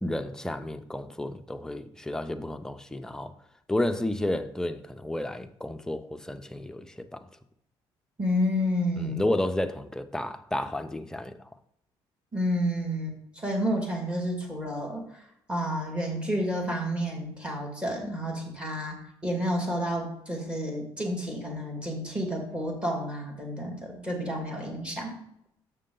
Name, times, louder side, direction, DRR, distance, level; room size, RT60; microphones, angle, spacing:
voice 1, 0.0-3.3 3.7-7.2 9.0-11.3, left 1 dB, 5° left, 0.5 m, -31 dB
voice 2, 8.2-9.2 12.3-15.2 15.5-19.0 19.2-25.2, equal, 10° right, 2.1 m, -30 dB
6.7 x 6.5 x 3.8 m
cardioid pair, 140°, 9 cm